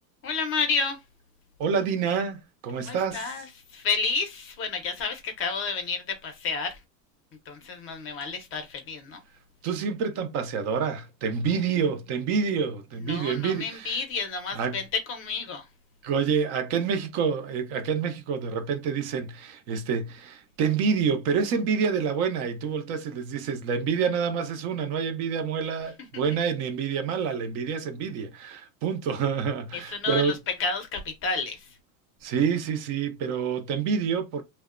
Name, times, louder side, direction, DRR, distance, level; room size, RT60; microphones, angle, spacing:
voice 1, 0.2-1.0 2.8-3.5 3.7-6.8 7.5-9.2 13.1-15.6 29.7-30.3 30.6-31.7, left 4 dB, 25° left, 0.6 m, -30 dB
voice 2, 1.6-3.3 9.6-14.0 14.5-14.8 16.0-30.4 32.2-34.4, right 6 dB, 35° right, 0.4 m, -27 dB
2.7 x 2.1 x 2.4 m
supercardioid pair, 140°, 50 cm